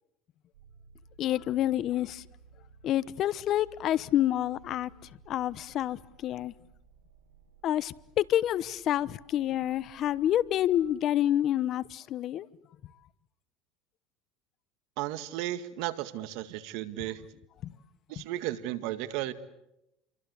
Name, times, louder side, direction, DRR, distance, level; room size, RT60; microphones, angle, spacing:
sound 1, 0.5-10.9, right 5 dB, 85° right, 6.5 m, -58 dB
voice 1, 1.2-2.2 2.8-4.9 5.3-6.5 7.6-12.5 17.6-17.7, left 12 dB, 50° left, 1.0 m, -28 dB
voice 2, 15.0-17.2 18.1-19.3, right 14 dB, 70° right, 2.0 m, -34 dB
29.5 x 24.0 x 8.2 m
supercardioid pair, 100°, 0 cm